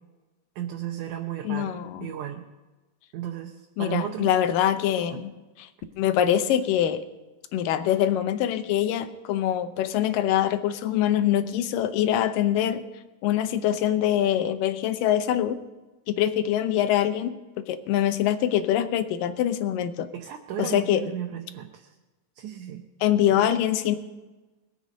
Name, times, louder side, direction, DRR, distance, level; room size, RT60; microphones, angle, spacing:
voice 1, 0.6-2.4 3.1-4.3 5.1-5.2 20.1-21.9 22.4-22.8 23.4-23.5, right 10 dB, 75° right, 2 dB, 2.2 m, -34 dB
voice 2, 1.4-2.1 3.8-5.3 5.6-5.7 6.0-7.0 7.5-12.8 13.2-15.6 16.1-17.3 17.7-20.1 20.6-21.0 23.0-24.0, left 11 dB, 85° left, 10 dB, 2.5 m, -24 dB
21.0 x 8.2 x 5.2 m, 1.1 s
omnidirectional pair, 3.8 m